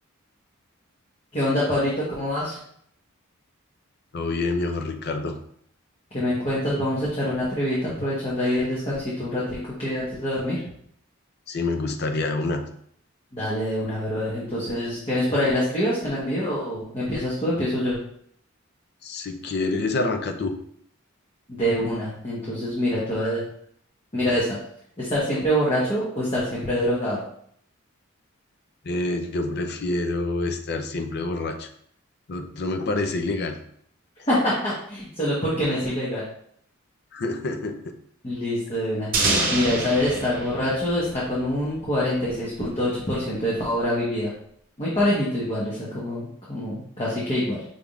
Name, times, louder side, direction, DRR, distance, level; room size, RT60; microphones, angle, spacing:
voice 1, 1.3-2.6 6.1-10.6 13.3-18.0 21.5-23.4 24.1-24.6 25.0-27.2 34.3-36.2 38.2-39.1 39.5-44.3 44.8-47.6, left 1 dB, 30° left, -8 dB, 1.1 m, -25 dB
voice 2, 4.1-5.4 11.5-12.7 19.0-20.6 28.8-31.7 32.3-33.6 37.1-38.0, left 2 dB, 50° left, 6 dB, 0.5 m, -27 dB
sound 1, 39.1-41.9, right 2 dB, 45° right, 0.9 m, -27 dB
5.3 x 3.5 x 2.4 m, 0.66 s
head